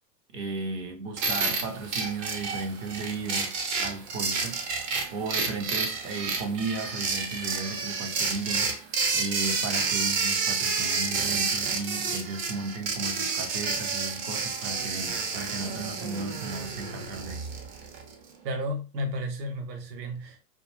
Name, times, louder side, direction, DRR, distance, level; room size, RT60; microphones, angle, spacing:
voice 1, 0.3-3.5 3.8-4.6 5.1-8.7 9.1-17.5, right 3 dB, 25° right, 0.4 m, -35 dB
sound 1, 1.2-18.1, right 4 dB, 55° right, 0.9 m, -30 dB
voice 2, 18.4-20.5, equal, 90° right, 0.8 m, -33 dB
2.4 x 2.1 x 3.0 m
hypercardioid pair, 115°, 49 cm